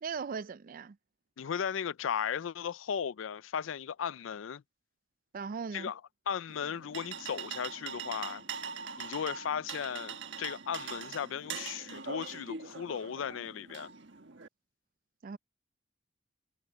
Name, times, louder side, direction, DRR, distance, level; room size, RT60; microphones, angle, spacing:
voice 1, 0.0-1.0 5.3-5.9 15.2-15.4, right 5 dB, 45° right, 0.4 m, -38 dB
voice 2, 1.4-4.6 5.7-6.0 6.3-8.4 9.0-13.9, left 8 dB, 80° left, 0.4 m, -36 dB
sound 1, 6.5-14.5, right 6 dB, 65° right, 1.5 m, -42 dB
head